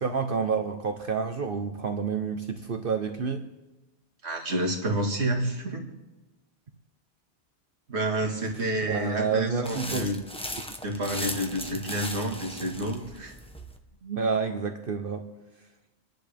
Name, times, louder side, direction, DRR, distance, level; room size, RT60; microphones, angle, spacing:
voice 1, 0.0-3.4 8.4-8.5 8.9-10.1 14.0-15.3, right 5 dB, 55° right, 6 dB, 1.0 m, -29 dB
voice 2, 4.2-5.8 7.9-10.2 10.8-13.3, right 1 dB, 75° right, 2 dB, 2.2 m, -29 dB
sound 1, 9.6-13.8, equal, 5° left, 1.0 m, -38 dB
28.5 x 10.5 x 3.5 m, 1.1 s
omnidirectional pair, 1.2 m